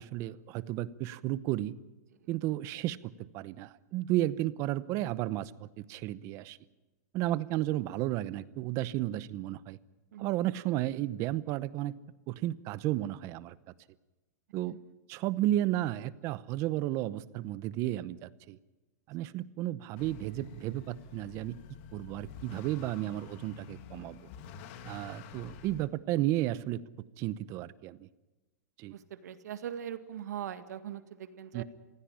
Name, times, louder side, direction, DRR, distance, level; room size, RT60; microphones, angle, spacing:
voice 1, 0.0-1.7 2.3-3.0 3.3-6.6 7.1-9.8 10.2-11.9 12.3-13.6 14.5-14.8 15.1-18.6 19.1-21.5 21.9-24.3 24.9-26.8 27.2-28.1 28.8-28.9 31.5-31.6, right 15 dB, 35° right, 19 dB, 0.8 m, -33 dB
Motor vehicle (road) / Accelerating revving vroom, 20.0-25.9, left 7 dB, 45° left, 2.2 m, -49 dB
voice 2, 29.2-31.6, right 10 dB, 85° right, 11 dB, 2.0 m, -40 dB
21.5 x 16.5 x 9.9 m, 1.1 s
supercardioid pair, 155°, 9 cm